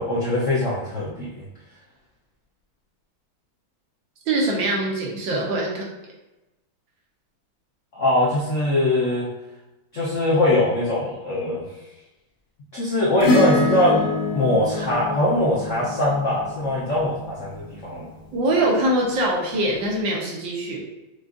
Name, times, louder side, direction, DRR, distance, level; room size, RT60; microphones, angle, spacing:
voice 1, 0.0-1.4 7.9-9.3 9.9-11.6 12.7-18.1, left 1 dB, 65° left, -7 dB, 0.7 m, -22 dB
voice 2, 4.3-5.9 18.3-20.8, right 1 dB, 70° right, -2 dB, 1.5 m, -23 dB
Acoustic guitar / Strum, 13.2-17.8 19.7-19.8, left 2 dB, 40° left, 1.1 m, -25 dB
6.3 x 2.4 x 2.5 m, 1.0 s
omnidirectional pair, 2.2 m